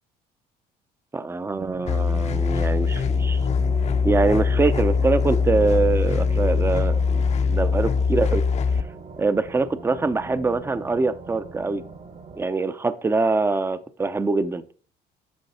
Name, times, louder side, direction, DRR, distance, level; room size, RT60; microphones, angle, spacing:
voice 1, 1.1-3.4 4.0-7.2 7.5-8.4 9.2-11.8 12.4-14.6, right 3 dB, 15° right, 13 dB, 0.6 m, -24 dB
sound 1, 1.6-12.5, right 3 dB, 50° right, 1.4 m, -40 dB
sound 2, 1.8-8.8, left 5 dB, 40° left, 0.7 m, -22 dB
10.5 x 4.6 x 4.2 m, 0.39 s
cardioid pair, 110°, 17 cm